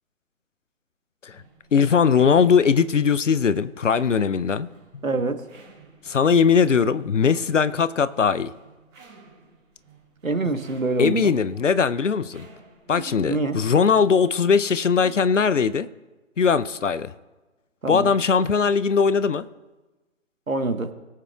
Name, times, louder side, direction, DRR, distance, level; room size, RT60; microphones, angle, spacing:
sound 1, 1.3-15.3, right 4 dB, 20° right, 4.4 m, -50 dB
voice 1, 1.7-4.7 4.9-5.0 6.0-8.5 11.0-12.5 12.9-15.9 16.4-17.1 17.9-19.5, left 6 dB, 65° left, 16 dB, 0.6 m, -20 dB
voice 2, 5.0-5.4 10.2-11.3 13.3-13.6 17.8-18.1 20.5-20.9, right 2 dB, 85° right, 8 dB, 1.4 m, -25 dB
21.5 x 8.4 x 2.4 m, 1.2 s
figure-of-eight pair, 145°, 40 cm